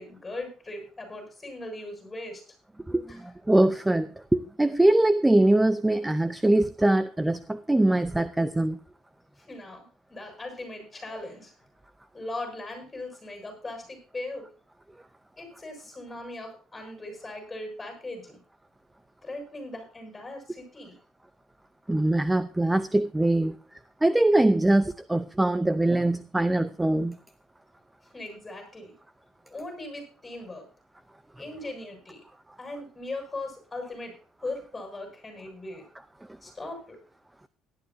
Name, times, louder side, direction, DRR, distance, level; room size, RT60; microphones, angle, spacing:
voice 1, 0.0-2.4 3.1-3.2 9.4-11.5 12.1-14.5 15.4-18.4 19.2-21.0 28.1-28.9 29.5-30.7 31.4-32.2 32.6-34.1 34.4-35.8 36.4-37.0, left 2 dB, 15° left, 4 dB, 6.6 m, -39 dB
voice 2, 2.9-8.8 21.9-23.6 24.0-27.2, right 1 dB, 5° right, 13 dB, 0.5 m, -23 dB
18.0 x 11.5 x 2.7 m, 0.37 s
cardioid pair, 140°, 0 cm